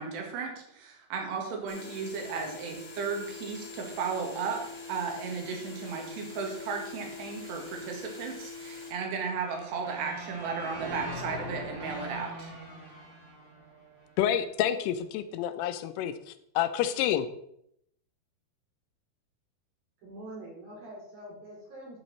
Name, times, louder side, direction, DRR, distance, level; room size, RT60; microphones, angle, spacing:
voice 1, 0.0-12.5, right 5 dB, 90° right, 2 dB, 4.0 m, -35 dB
sound 1, 1.7-8.9, left 4 dB, 30° left, 2.3 m, -44 dB
sound 2, 9.3-14.4, right 1 dB, 25° right, 1.5 m, -41 dB
voice 2, 14.2-16.1 16.6-17.3, left 10 dB, 80° left, 11 dB, 2.6 m, -28 dB
voice 3, 20.0-22.0, right 1 dB, 60° right, -5 dB, 6.1 m, -44 dB
12.0 x 6.6 x 4.2 m, 0.72 s
omnidirectional pair, 4.7 m